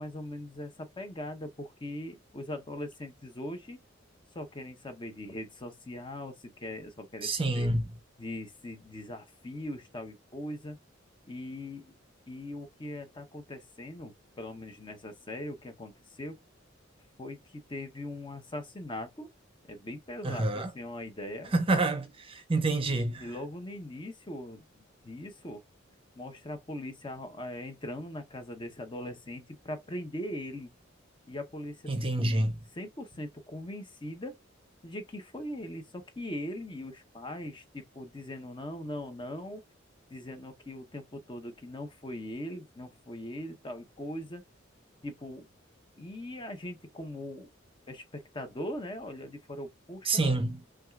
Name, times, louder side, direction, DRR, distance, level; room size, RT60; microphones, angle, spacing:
voice 1, 0.0-3.8 4.3-7.7 8.2-10.8 11.3-11.9 12.3-16.4 17.2-19.3 19.7-21.5 23.2-24.7 25.0-25.6 26.1-30.7 31.3-31.8 32.7-34.4 34.8-39.6 40.1-44.4 45.0-45.5 46.0-47.5 47.9-50.2, left 1 dB, 25° left, 0.9 m, -40 dB
voice 2, 7.2-7.8 20.2-20.7 21.5-23.2 31.9-32.5 50.1-50.6, right 2 dB, 30° right, 0.7 m, -27 dB
6.1 x 2.4 x 2.4 m
head